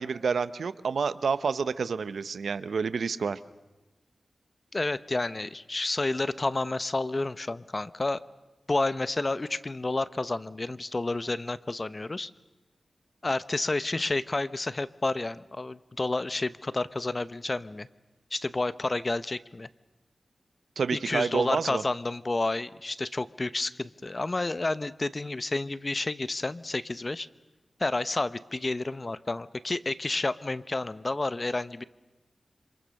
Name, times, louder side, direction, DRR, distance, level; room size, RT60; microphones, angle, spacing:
voice 1, 0.0-3.4 20.8-21.8, right 5 dB, 90° right, 14 dB, 0.9 m, -29 dB
voice 2, 4.7-8.2 8.7-12.3 13.2-17.9 18.3-19.7 20.9-27.3 27.8-31.8, left 2 dB, 35° left, 15 dB, 0.8 m, -30 dB
27.5 x 26.5 x 6.5 m, 1.1 s
wide cardioid pair, 75°, 0 cm